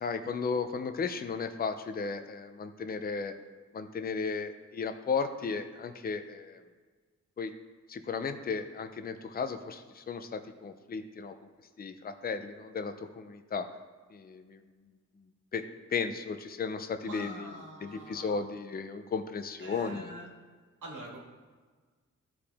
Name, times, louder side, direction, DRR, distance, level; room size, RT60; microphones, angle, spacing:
voice 1, 0.0-3.3 3.7-6.6 7.4-7.5 7.9-11.3 11.8-13.7 14.1-14.6 15.5-15.6 15.9-17.5 17.8-20.1, left 5 dB, 30° left, 8 dB, 0.5 m, -35 dB
voice 2, 17.0-18.4 19.6-20.3 20.8-21.2, right 1 dB, 85° right, -1 dB, 2.0 m, -45 dB
14.5 x 4.9 x 3.5 m, 1.5 s
wide cardioid pair, 165°, 30 cm